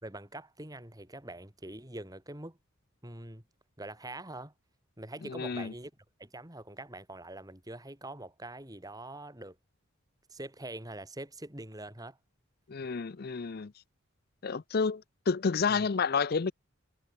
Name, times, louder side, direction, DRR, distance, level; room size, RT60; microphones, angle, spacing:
voice 1, 0.0-2.6 3.0-3.4 3.8-4.5 5.0-5.9 6.2-9.6 10.3-12.2 15.7-15.9, right 1 dB, 20° right, 3.5 m, -44 dB
voice 2, 5.3-5.7 12.7-13.7 14.4-16.5, left 5 dB, 50° left, 0.5 m, -30 dB
head